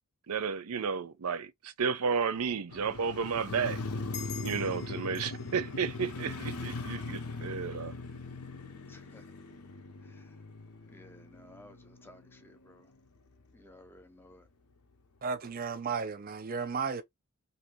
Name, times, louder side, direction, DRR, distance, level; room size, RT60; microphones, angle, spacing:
voice 1, 0.3-3.8 4.4-7.9, right 6 dB, 85° right, 0.6 m, -32 dB
Motorcycle, 2.7-12.8 13.2-13.3, left 3 dB, 85° left, 0.7 m, -40 dB
sound 1, 4.1-7.2, left 8 dB, 50° left, 0.7 m, -48 dB
voice 2, 8.9-9.2 10.0-10.3 10.9-12.9 13.5-14.4, left 1 dB, 10° left, 0.4 m, -56 dB
voice 3, 15.2-17.0, right 5 dB, 40° right, 0.5 m, -34 dB
2.8 x 2.7 x 3.0 m
head